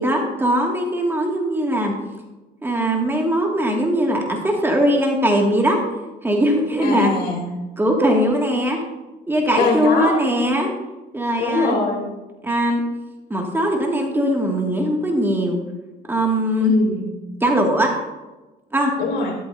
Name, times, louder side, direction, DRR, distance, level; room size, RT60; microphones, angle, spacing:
voice 1, 0.0-1.9 2.6-5.8 6.2-7.1 7.8-8.8 9.3-10.7 11.1-11.8 12.4-12.8 13.3-15.6 16.1-16.7 17.4-17.9 18.7-18.9, equal, 15° right, 0 dB, 2.3 m, -20 dB
voice 2, 6.8-7.5 9.5-10.2 11.4-12.1 16.6-17.1 19.0-19.3, left 3 dB, 70° left, 0 dB, 3.8 m, -22 dB
13.0 x 12.5 x 2.8 m, 1.1 s
cardioid pair, 110°, 17 cm